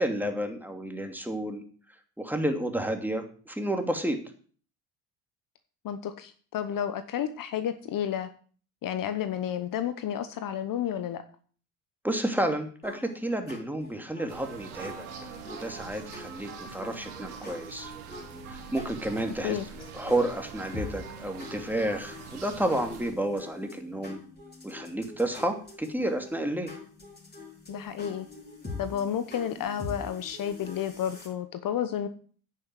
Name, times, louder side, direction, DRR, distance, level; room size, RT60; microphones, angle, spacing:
voice 1, 0.0-1.6 2.2-4.2 12.0-15.1 15.5-17.9 18.5-19.6 19.9-24.2 24.6-26.7, right 1 dB, 5° right, 5 dB, 2.7 m, -31 dB
voice 2, 5.8-8.3 8.8-11.2 19.4-19.7 27.7-28.3 28.8-32.1, left 9 dB, 50° left, 11 dB, 1.1 m, -31 dB
sound 1, 12.8-31.3, left 2 dB, 25° left, 5.8 m, -45 dB
sound 2, 14.3-23.1, right 6 dB, 85° right, 2.6 m, -44 dB
9.6 x 6.9 x 7.7 m, 0.44 s
hypercardioid pair, 70°, 42 cm